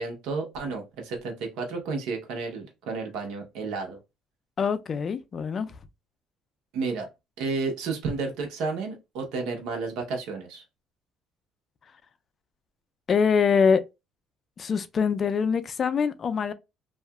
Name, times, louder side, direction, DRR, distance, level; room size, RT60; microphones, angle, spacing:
voice 1, 0.0-4.0 6.7-7.1 7.4-10.6, right 4 dB, 80° right, 0.9 m, -31 dB
voice 2, 4.6-5.7 13.1-13.9 14.6-16.5, left 6 dB, 35° left, 0.3 m, -24 dB
2.7 x 2.4 x 2.3 m
cardioid pair, 120°, 0 cm